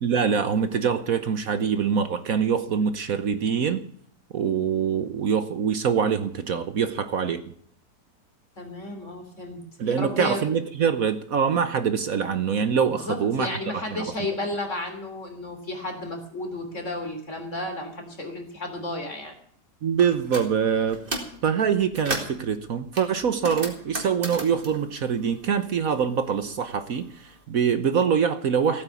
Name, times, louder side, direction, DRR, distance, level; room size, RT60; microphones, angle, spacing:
voice 1, 0.0-3.8 4.3-7.4 9.8-14.0 19.8-21.0 21.4-28.8, right 7 dB, 60° right, 10 dB, 1.3 m, -24 dB
voice 2, 8.6-10.4 12.9-19.3, left 2 dB, 45° left, 5 dB, 3.7 m, -33 dB
sound 1, 20.0-20.5 20.9-21.4 21.7-22.4 22.9-25.9 26.2-27.3, right 2 dB, 30° right, 3.1 m, -34 dB
16.5 x 9.2 x 8.4 m, 0.62 s
omnidirectional pair, 1.8 m